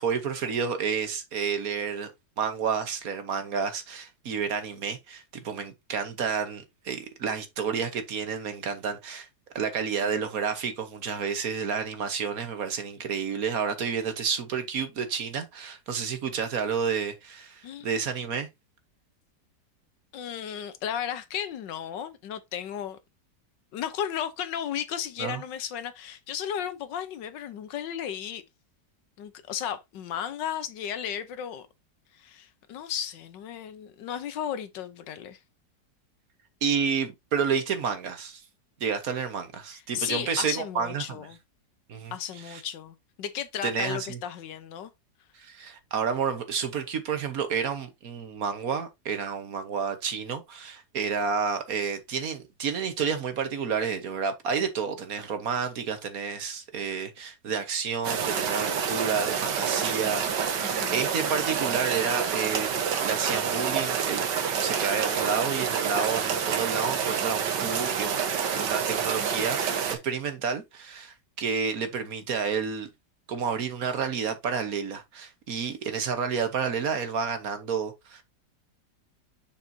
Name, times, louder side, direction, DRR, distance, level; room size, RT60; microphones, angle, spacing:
voice 1, 0.0-2.1 2.4-9.3 9.5-18.5 25.2-25.4 36.6-38.4 38.8-41.2 41.9-42.1 42.4-42.6 43.6-44.2 45.4-64.3 64.6-72.9 73.3-78.2, right 6 dB, 60° right, 1.5 m, -30 dB
voice 2, 20.1-23.0 23.7-28.4 29.2-31.7 32.1-35.4 39.7-41.4 42.1-44.9 60.6-61.1, left 9 dB, 90° left, 1.5 m, -34 dB
sound 1, 58.0-70.0, right 7 dB, 80° right, 1.7 m, -28 dB
6.7 x 5.9 x 2.7 m
omnidirectional pair, 1.9 m